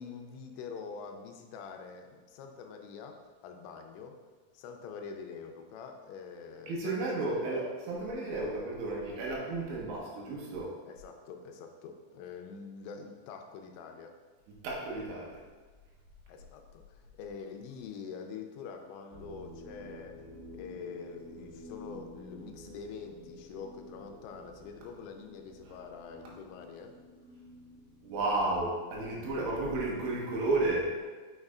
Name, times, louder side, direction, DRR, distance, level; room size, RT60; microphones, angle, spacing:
voice 1, 0.0-4.2 4.5-6.9 7.3-7.7 10.9-14.2 16.3-20.2 20.5-27.0 29.6-29.8, left 5 dB, 85° left, 4 dB, 2.9 m, -45 dB
voice 2, 6.7-10.8 14.6-15.4 25.7-25.8 26.2-26.3 28.0-31.0, right 2 dB, 85° right, -4 dB, 3.5 m, -32 dB
sound 1, 19.1-30.3, left 1 dB, 50° right, 3.1 m, -51 dB
6.5 x 6.5 x 2.4 m, 1.4 s
omnidirectional pair, 5.1 m